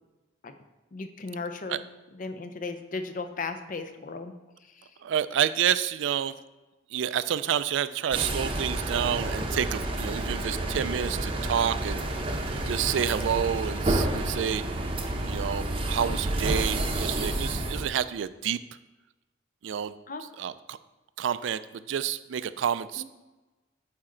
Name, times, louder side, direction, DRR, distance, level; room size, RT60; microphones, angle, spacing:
voice 1, 0.9-1.8 2.1-4.3 4.6-4.9 16.0-16.2 20.1-20.2 23.0-23.1, left 3 dB, 45° left, 8 dB, 0.6 m, -36 dB
voice 2, 5.0-6.3 6.9-12.0 12.6-14.6 15.3-18.6 19.6-19.9 20.4-20.8 21.2-23.0, right 9 dB, 75° right, 15 dB, 0.3 m, -29 dB
sound 1, 8.1-17.9, right 1 dB, 30° right, 0.7 m, -30 dB
8.9 x 4.2 x 3.8 m, 1.1 s
head